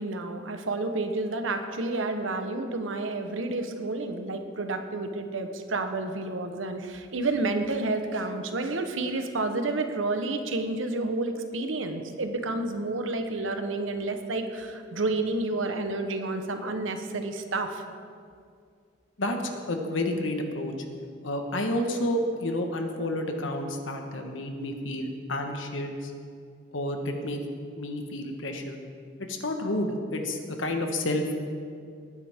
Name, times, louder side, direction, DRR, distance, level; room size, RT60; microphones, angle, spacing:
voice 1, 0.0-17.9, right 2 dB, 85° right, 7 dB, 1.0 m, -30 dB
voice 2, 19.7-20.7 21.2-26.1 26.7-27.4 27.8-28.8 29.3-31.3, left 1 dB, 85° left, 4 dB, 1.4 m, -30 dB
19.5 x 9.7 x 3.6 m, 2.3 s
head